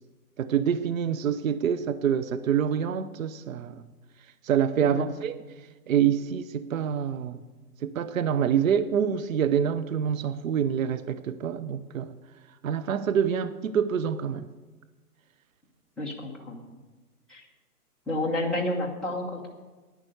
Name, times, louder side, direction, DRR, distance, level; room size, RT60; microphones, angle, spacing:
voice 1, 0.4-3.8 4.4-5.4 5.9-7.4 7.8-12.2 12.6-14.5, right 8 dB, 60° right, 13 dB, 0.8 m, -26 dB
voice 2, 4.8-5.1 16.0-16.6 17.3-17.4 18.1-19.5, left 1 dB, ahead, -6 dB, 0.8 m, -30 dB
11.0 x 9.7 x 7.9 m, 1.3 s
hypercardioid pair, 155°, 47 cm